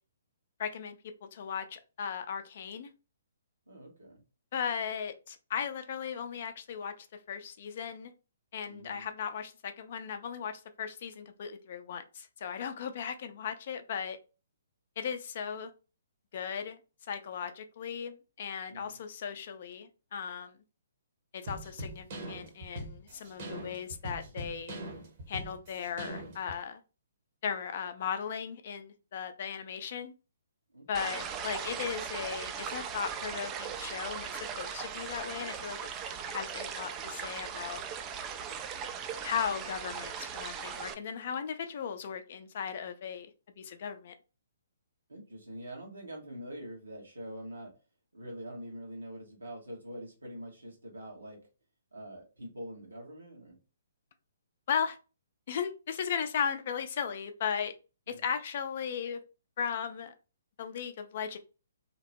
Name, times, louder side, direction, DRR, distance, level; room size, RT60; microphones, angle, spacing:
voice 1, 0.6-2.9 4.5-8.1 8.5-14.2 15.0-15.7 16.3-16.8 17.1-20.5 21.3-24.8 25.3-26.8 27.4-30.1 30.9-35.8 36.3-37.8 39.2-43.3 43.6-44.1 54.7-55.0 55.5-57.7 58.1-59.2 59.6-60.1 60.6-61.4, left 7 dB, 50° left, 9 dB, 0.4 m, -37 dB
voice 2, 3.7-4.2 8.7-9.1 18.7-19.0 30.7-31.2 45.1-47.7 48.1-51.4 51.9-53.6 58.1-58.2, equal, 80° right, -1 dB, 1.1 m, -45 dB
sound 1, 21.5-26.6, right 1 dB, 45° right, 0.9 m, -42 dB
sound 2, 30.9-40.9, right 7 dB, 25° right, 0.3 m, -39 dB
2.8 x 2.0 x 2.9 m, 0.32 s
figure-of-eight pair, 130°, 0 cm